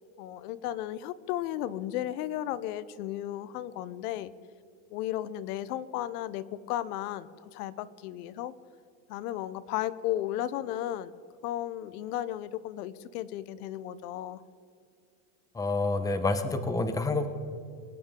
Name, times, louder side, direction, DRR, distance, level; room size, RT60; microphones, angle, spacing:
voice 1, 0.2-4.3 4.9-8.5 9.1-11.1 11.4-14.4, left 13 dB, 80° left, 17 dB, 0.9 m, -34 dB
voice 2, 15.5-17.3, left 3 dB, 10° left, 9 dB, 0.9 m, -28 dB
23.0 x 10.0 x 3.8 m, 2.4 s
supercardioid pair, 130°, 45 cm